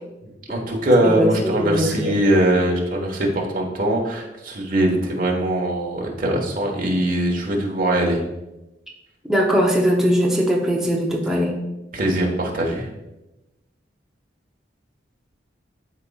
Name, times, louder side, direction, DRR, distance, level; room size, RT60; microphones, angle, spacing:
voice 1, 0.2-8.2 11.9-12.9, right 1 dB, 45° right, -1 dB, 1.3 m, -21 dB
voice 2, 1.0-2.1 9.3-11.6, equal, 5° right, -3 dB, 0.7 m, -20 dB
11.5 x 4.1 x 2.4 m, 0.98 s
head